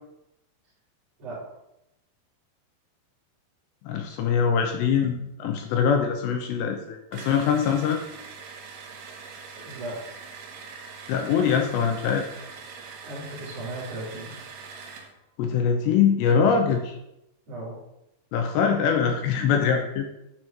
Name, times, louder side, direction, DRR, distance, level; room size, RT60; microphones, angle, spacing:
voice 1, 3.9-8.0 11.1-12.3 15.4-17.0 18.3-20.1, left 7 dB, 80° left, 4 dB, 2.5 m, -23 dB
sound 1, 7.1-15.1, right 5 dB, 80° right, 2.1 m, -43 dB
voice 2, 9.5-10.0 13.0-14.4 17.5-17.8, right 2 dB, 35° right, -6 dB, 3.4 m, -36 dB
9.9 x 4.5 x 4.6 m, 0.86 s
omnidirectional pair, 5.7 m